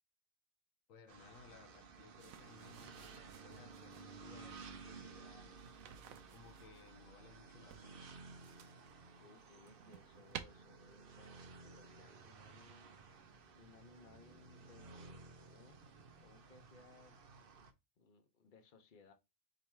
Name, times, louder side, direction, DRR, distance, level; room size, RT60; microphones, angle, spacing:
voice 1, 0.9-5.5 6.3-8.1, left 6 dB, 80° left, 1.1 m, -61 dB
sound 1, 1.1-17.7, right 4 dB, 50° right, 0.8 m, -56 dB
sound 2, 2.2-4.2 5.5-6.9 7.7-8.9 9.4-10.4, right 9 dB, 90° right, 1.0 m, -54 dB
voice 2, 9.2-13.0 13.5-15.8 16.2-17.2 18.0-19.1, left 4 dB, 40° left, 1.0 m, -63 dB
3.9 x 2.9 x 4.5 m
omnidirectional pair, 1.4 m